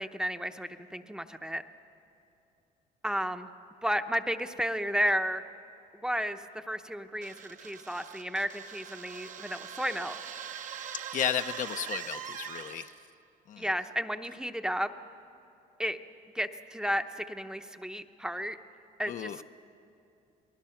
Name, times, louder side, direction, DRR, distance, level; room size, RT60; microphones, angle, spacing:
voice 1, 0.0-1.6 3.0-3.5 3.8-5.4 6.0-10.2 13.6-14.9 15.8-16.0 16.3-18.6 19.0-19.4, equal, 5° right, 8 dB, 0.8 m, -32 dB
sound 1, 7.2-13.1, right 8 dB, 55° right, 0.9 m, -42 dB
voice 2, 11.1-12.9 13.5-13.7 19.1-19.4, left 9 dB, 55° left, 9 dB, 0.6 m, -33 dB
28.5 x 19.5 x 5.8 m, 2.8 s
cardioid pair, 110°, 16 cm